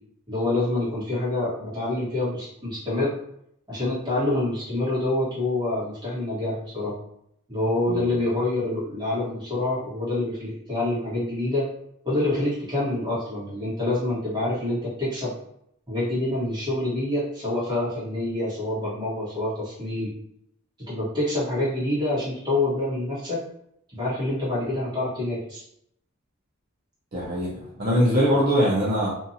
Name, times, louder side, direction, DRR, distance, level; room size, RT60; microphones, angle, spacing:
voice 1, 0.3-3.1 3.7-6.9 7.5-11.7 12.0-15.3 15.9-20.1 20.9-23.4 23.9-25.6, left 2 dB, 20° right, -9 dB, 1.3 m, -26 dB
voice 2, 27.1-29.1, equal, 45° right, -8 dB, 0.7 m, -22 dB
2.7 x 2.5 x 2.7 m, 0.75 s
head